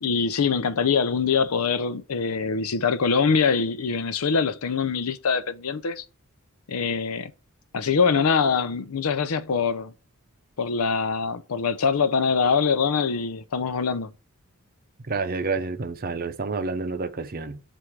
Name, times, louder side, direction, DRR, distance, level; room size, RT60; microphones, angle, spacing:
voice 1, 0.0-6.0 6.7-7.3 7.7-9.9 10.6-14.1, left 5 dB, 80° left, 0.6 m, -23 dB
voice 2, 15.1-17.6, right 4 dB, 40° right, 0.6 m, -29 dB
7.6 x 2.6 x 4.7 m
head